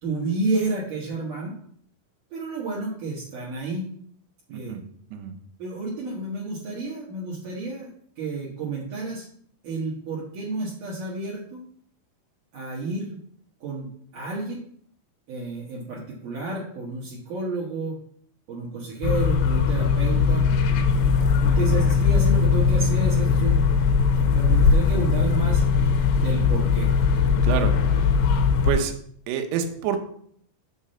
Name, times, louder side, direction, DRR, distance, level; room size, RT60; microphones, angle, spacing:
voice 1, 0.0-1.6 2.3-3.9 4.5-4.8 5.6-7.9 8.2-9.3 9.6-11.6 12.5-13.2 13.6-13.9 14.1-14.6 15.3-18.0 18.5-20.5 21.4-23.6 24.1-25.6 26.1-26.9, right 3 dB, 60° right, -6 dB, 2.6 m, -30 dB
voice 2, 4.5-5.4 27.4-28.1 28.6-28.9 29.3-30.0, right 7 dB, 85° right, 6 dB, 2.9 m, -28 dB
sound 1, 19.0-28.7, left 5 dB, 90° left, 2.8 m, -20 dB
7.2 x 6.6 x 4.2 m, 0.63 s
omnidirectional pair, 4.8 m